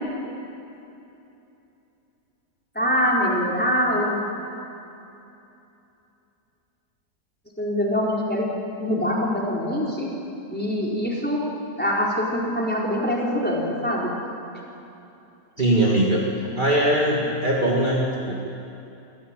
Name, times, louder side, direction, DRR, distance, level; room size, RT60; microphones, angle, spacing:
voice 1, 2.7-4.2 7.6-8.5 8.8-10.1 10.5-11.5 11.8-14.1, equal, 5° left, -4 dB, 4.3 m, -24 dB
voice 2, 15.6-16.3 16.6-18.4, right 1 dB, 30° right, -4 dB, 2.5 m, -21 dB
27.0 x 15.0 x 9.1 m, 2.8 s
omnidirectional pair, 1.7 m